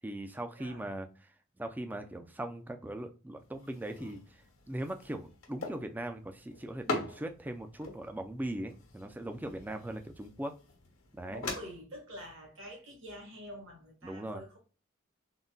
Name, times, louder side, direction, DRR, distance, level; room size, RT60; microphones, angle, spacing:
voice 1, 0.0-1.3 1.6-10.6 11.1-11.5 14.0-14.4, right 1 dB, 10° right, 0.3 m, -40 dB
sound 1, 3.4-11.6, left 3 dB, 80° left, 1.0 m, -43 dB
voice 2, 11.3-14.6, equal, 65° right, 1.3 m, -47 dB
3.8 x 2.1 x 2.2 m
head